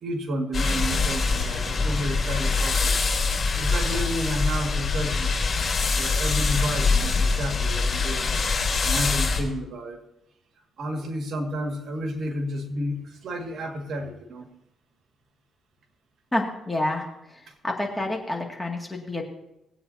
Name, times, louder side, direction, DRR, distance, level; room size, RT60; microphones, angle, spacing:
voice 1, 0.0-3.0 3.6-5.4 6.0-8.3 8.8-10.0 10.8-14.5, equal, 60° right, 3 dB, 1.9 m, -31 dB
sound 1, 0.5-9.4, left 4 dB, 40° left, 3.5 m, -24 dB
voice 2, 16.3-19.2, left 1 dB, 15° left, 1 dB, 2.2 m, -29 dB
20.0 x 8.5 x 2.8 m, 0.87 s
cardioid pair, 90°, 0 cm